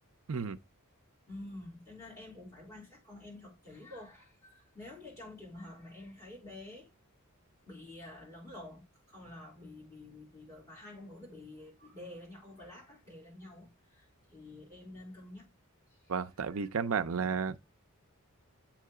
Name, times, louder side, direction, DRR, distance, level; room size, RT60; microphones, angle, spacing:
voice 1, 1.3-6.9 7.7-15.5 16.5-16.6, left 2 dB, 15° left, 3.8 m, -49 dB
voice 2, 16.1-17.6, right 5 dB, 65° right, 0.5 m, -32 dB
7.6 x 3.1 x 4.8 m
head